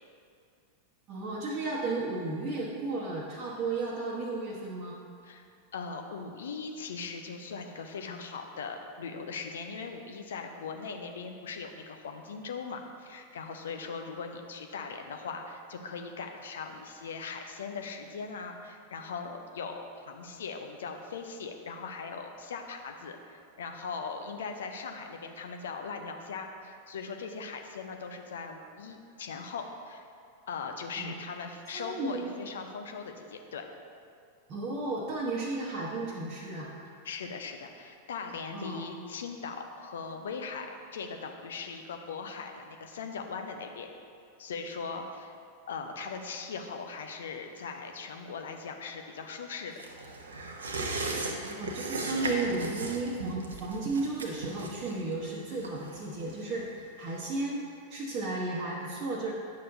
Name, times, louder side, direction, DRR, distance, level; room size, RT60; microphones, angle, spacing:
voice 1, 1.1-5.0 31.0-31.1 31.7-32.3 34.5-36.7 38.5-38.8 51.3-57.6 57.9-59.3, right 3 dB, 35° right, -6 dB, 1.0 m, -34 dB
voice 2, 5.7-30.0 30.5-33.7 37.0-43.9 44.4-45.3 45.7-49.8, left 5 dB, 65° left, 4 dB, 0.7 m, -40 dB
sound 1, 49.8-56.8 57.1-57.2, right 2 dB, 70° right, 0.7 m, -37 dB
10.5 x 6.5 x 2.7 m, 2.4 s
figure-of-eight pair, 90°, 0 cm